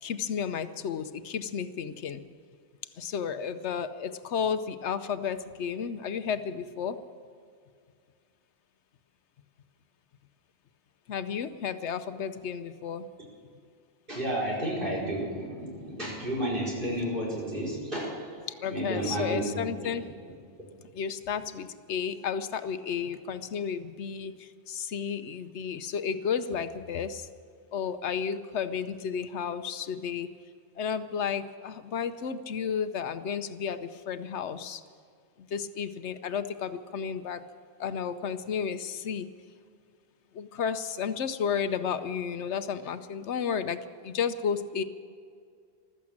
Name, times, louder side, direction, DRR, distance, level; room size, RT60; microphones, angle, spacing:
voice 1, 0.0-2.2 3.0-7.0 11.1-13.1 18.6-20.1 20.9-27.3 27.7-30.3 30.8-34.8 35.5-37.5 37.8-39.3 40.3-44.8, left 7 dB, 80° left, 11 dB, 1.0 m, -32 dB
voice 2, 14.1-18.3 18.7-20.0 20.6-20.7, right 1 dB, 50° right, -4 dB, 5.1 m, -32 dB
15.0 x 13.5 x 7.3 m, 2.2 s
omnidirectional pair, 1.2 m